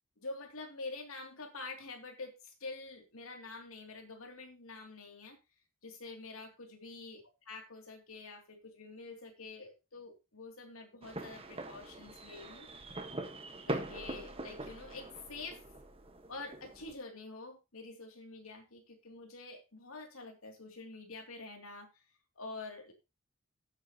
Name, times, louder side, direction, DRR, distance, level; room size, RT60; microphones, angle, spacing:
voice 1, 0.2-5.4 5.8-7.2 7.5-12.7 13.7-15.7 16.3-22.0 22.4-22.9, left 3 dB, 85° left, 3 dB, 2.9 m, -47 dB
sound 1, 11.0-16.9, right 2 dB, 30° right, 1.4 m, -43 dB
15.5 x 8.5 x 3.0 m, 0.26 s
head